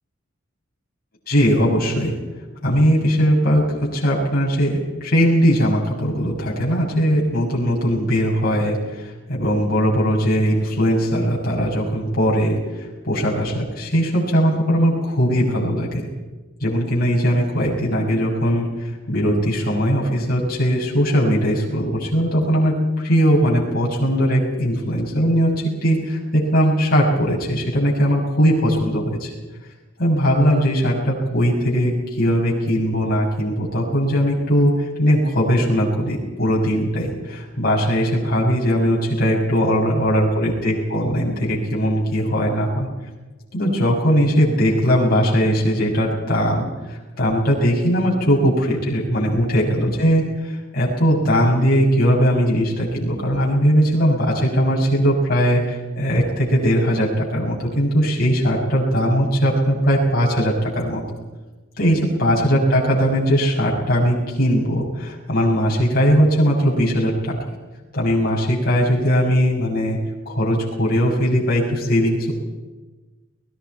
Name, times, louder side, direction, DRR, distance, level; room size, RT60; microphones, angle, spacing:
voice 1, 1.3-2.1 2.6-16.1 16.6-25.5 25.8-29.3 30.0-42.9 43.5-61.0 61.8-67.4 67.9-70.0 70.3-72.3, equal, 45° left, -3 dB, 6.2 m, -19 dB
30.0 x 20.0 x 4.6 m, 1.2 s
head